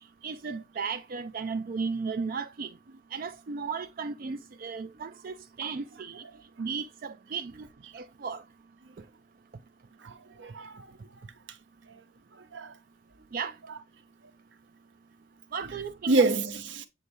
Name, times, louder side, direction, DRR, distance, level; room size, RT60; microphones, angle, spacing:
voice 1, 0.2-2.7 3.1-6.2 6.6-7.7 7.9-8.4 13.3-13.5 15.5-16.1, right 5 dB, 45° right, 0.4 m, -35 dB
voice 2, 10.0-10.9 12.5-12.7 13.7-13.8 15.6-16.9, right 3 dB, 65° right, 0.9 m, -28 dB
8.0 x 2.7 x 4.7 m
head